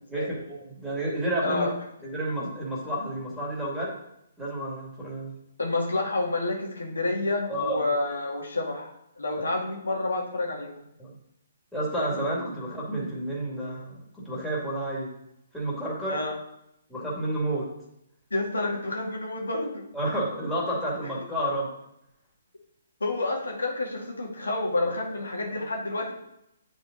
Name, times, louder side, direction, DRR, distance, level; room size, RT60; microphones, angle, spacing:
voice 1, 0.1-1.7 2.0-3.9 4.4-5.3 7.5-7.8 11.0-11.1 11.7-15.1 15.5-16.2 16.9-17.7 19.9-21.7 24.8-24.9 25.5-25.6, right 1 dB, ahead, -7 dB, 2.6 m, -30 dB
voice 2, 5.6-8.9 9.2-10.8 16.1-16.3 18.3-19.9 23.0-26.1, left 2 dB, 75° left, -1 dB, 2.0 m, -29 dB
9.9 x 4.1 x 4.0 m, 0.81 s
figure-of-eight pair, 130°, 0 cm